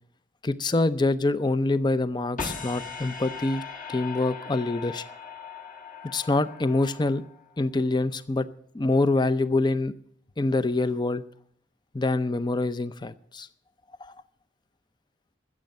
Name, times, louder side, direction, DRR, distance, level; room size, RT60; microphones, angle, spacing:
voice 1, 0.4-3.6 3.9-5.1 6.1-7.2 7.6-8.5 8.7-9.9 10.4-11.2 11.9-13.5 14.0-14.2, left 2 dB, 25° left, 14 dB, 0.6 m, -25 dB
sound 1, 2.4-7.6, left 5 dB, 45° left, 1.6 m, -38 dB
15.0 x 7.4 x 9.0 m, 0.65 s
head